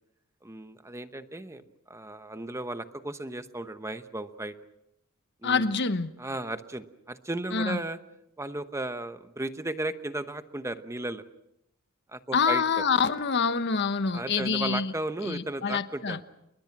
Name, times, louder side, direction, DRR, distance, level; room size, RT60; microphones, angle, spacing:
voice 1, 0.4-4.5 5.4-5.8 6.2-8.0 8.4-11.2 12.1-12.8 14.1-16.2, right 2 dB, 15° right, 10 dB, 1.0 m, -35 dB
voice 2, 5.4-6.1 7.5-7.8 12.3-14.9 15.2-16.2, left 5 dB, 50° left, 11 dB, 1.1 m, -26 dB
29.0 x 21.5 x 6.0 m, 0.83 s
head